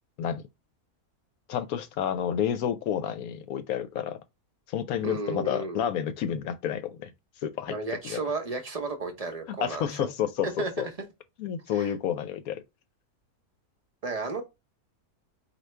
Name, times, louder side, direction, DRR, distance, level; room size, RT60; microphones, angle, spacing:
voice 1, 1.5-4.2 4.7-7.1 7.4-7.7 8.0-8.2 9.6-10.9 11.4-12.6, left 9 dB, 75° left, 1.1 m, -30 dB
voice 2, 5.0-5.8 7.7-10.1 10.4-10.9 11.7-11.9 14.0-14.4, right 3 dB, 35° right, 0.7 m, -33 dB
4.6 x 2.8 x 3.2 m
omnidirectional pair, 1.6 m